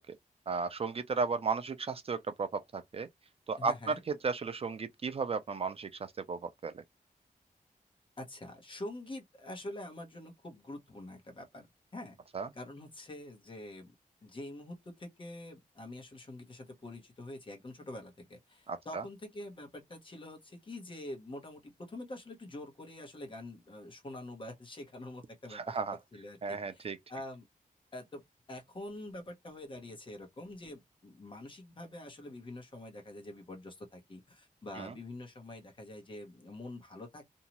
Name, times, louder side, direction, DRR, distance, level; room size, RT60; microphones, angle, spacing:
voice 1, 0.5-3.1 3.5-4.0 4.2-6.8 12.3-12.5 18.7-19.0 25.5-26.0 26.4-27.0 34.8-34.9, right 4 dB, 40° right, 0.4 m, -34 dB
voice 2, 3.6-4.0 8.2-11.7 11.9-12.2 12.5-13.9 14.2-25.9 26.1-27.5 27.9-28.2 28.5-37.3, left 1 dB, 35° left, 1.0 m, -46 dB
2.7 x 2.3 x 2.9 m
wide cardioid pair, 150°, 15 cm